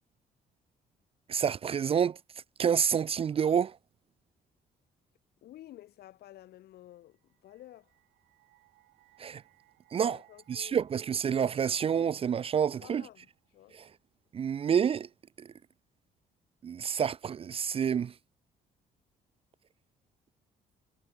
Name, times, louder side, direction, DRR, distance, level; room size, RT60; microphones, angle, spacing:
voice 1, 1.3-2.2 2.6-3.8 9.2-9.4 9.9-10.2 10.5-13.1 13.7-13.9 14.3-15.1 15.4-15.5 16.6-18.1, right 7 dB, 35° right, 0.4 m, -28 dB
voice 2, 5.4-7.9 9.9-10.8 12.7-13.8, left 14 dB, 80° left, 8.0 m, -52 dB
sound 1, 6.9-14.0, right 18 dB, 90° right, 4.1 m, -67 dB
cardioid pair, 85°, 16 cm